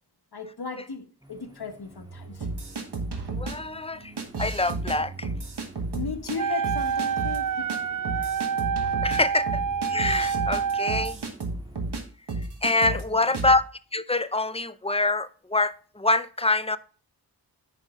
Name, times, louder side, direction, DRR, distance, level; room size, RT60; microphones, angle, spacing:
voice 1, 0.3-2.5 5.9-8.0 12.8-13.3, left 4 dB, 70° left, 1.4 m, -36 dB
sound 1, 1.2-12.0, right 3 dB, 10° right, 1.9 m, -48 dB
sound 2, 2.4-3.5 4.2-5.0 5.2-6.4 6.6-7.4 7.7-7.8 8.0-12.0 12.3-13.0 13.3-13.6, right 3 dB, 75° right, 1.5 m, -32 dB
voice 2, 3.4-5.3 9.0-9.6 9.9-11.2 12.6-13.6 13.9-16.8, left 2 dB, 15° left, 0.5 m, -25 dB
Wind instrument woodwind instrument, 6.3-11.1, right 7 dB, 55° right, 0.5 m, -27 dB
10.0 x 5.3 x 3.7 m
wide cardioid pair, 60°, 40 cm